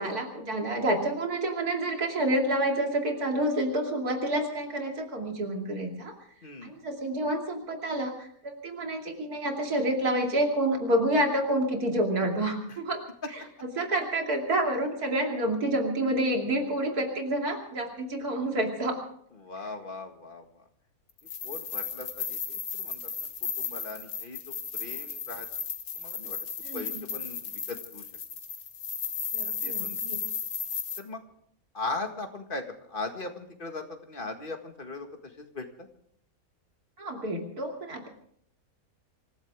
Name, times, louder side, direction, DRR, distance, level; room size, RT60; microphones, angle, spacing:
voice 1, 0.0-6.1 6.6-13.0 13.3-13.4 13.8-19.0 26.6-27.0 29.3-30.2 37.0-38.1, right 1 dB, 90° right, 2 dB, 3.2 m, -28 dB
voice 2, 6.4-6.7 12.7-12.8 19.4-20.6 21.4-23.3 23.6-25.5 26.0-26.4 26.7-28.0 29.6-30.0 31.0-31.2 31.7-35.9, left 3 dB, 35° left, 4 dB, 2.1 m, -39 dB
sound 1, 21.2-31.0, left 6 dB, 70° left, 1.7 m, -35 dB
25.5 x 15.0 x 3.6 m, 0.64 s
omnidirectional pair, 1.6 m